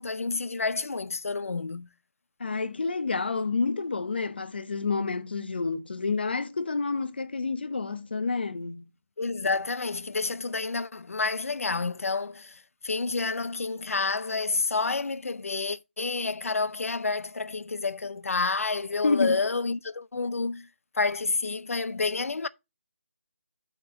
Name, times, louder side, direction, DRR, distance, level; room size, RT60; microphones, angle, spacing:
voice 1, 0.0-1.9 9.2-20.7 21.0-22.5, left 3 dB, 85° left, 0.6 m, -29 dB
voice 2, 2.4-8.8 19.0-19.4, left 4 dB, 45° left, 0.8 m, -29 dB
8.2 x 4.3 x 5.3 m
figure-of-eight pair, 175°, 7 cm